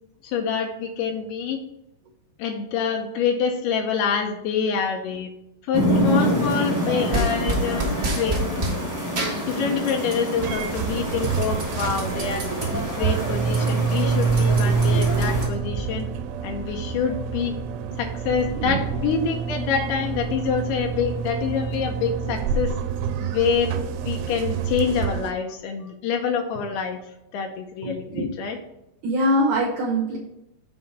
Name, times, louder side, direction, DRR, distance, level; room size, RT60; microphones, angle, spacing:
voice 1, 0.2-1.6 2.4-5.3 5.6-7.8 8.1-8.4 9.3-12.4 12.7-16.1 16.4-17.5 18.0-22.8 23.2-23.8 24.0-27.0 27.3-28.6, left 6 dB, 85° left, 3 dB, 2.6 m, -26 dB
sound 1, 5.7-15.5, equal, 15° left, 1.2 m, -27 dB
sound 2, 7.1-8.8 9.1-10.3 10.6-12.7 13.1-13.2 13.4-15.8, right 2 dB, 40° right, 1.6 m, -29 dB
sound 3, 10.4-25.3, right 6 dB, 85° right, 2.6 m, -27 dB
voice 2, 27.8-28.3 29.0-30.2, equal, 65° right, -3 dB, 2.3 m, -23 dB
7.2 x 3.8 x 5.3 m, 0.85 s
omnidirectional pair, 4.6 m